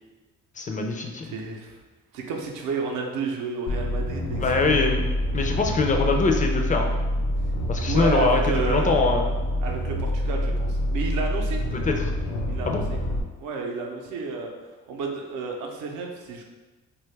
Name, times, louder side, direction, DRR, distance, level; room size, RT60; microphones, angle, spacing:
voice 1, 0.6-1.3 4.4-5.0 5.3-6.9 7.7-9.4 11.7-12.1 12.7-12.8, left 3 dB, 25° left, 2 dB, 0.4 m, -23 dB
voice 2, 1.2-1.8 2.1-4.5 7.8-8.9 9.6-11.6 12.5-13.0 13.4-14.5 14.9-16.4, right 4 dB, 85° right, 1 dB, 0.6 m, -31 dB
sound 1, 3.7-13.2, equal, 70° left, 0.6 m, -26 dB
2.7 x 2.3 x 3.2 m, 1.2 s
cardioid pair, 90°, 30 cm